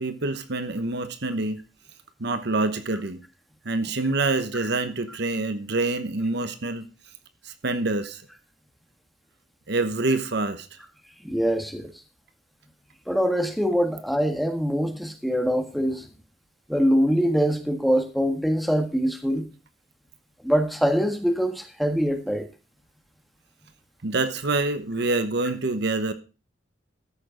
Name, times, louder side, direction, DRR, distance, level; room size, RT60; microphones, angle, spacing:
voice 1, 0.0-1.6 2.2-3.2 3.6-6.9 7.4-8.2 9.7-10.7 24.0-26.1, right 2 dB, 60° right, 1.0 m, -26 dB
voice 2, 11.2-11.9 13.1-16.0 16.7-19.4 20.4-22.5, equal, ahead, 1.5 m, -23 dB
14.0 x 6.6 x 5.0 m
head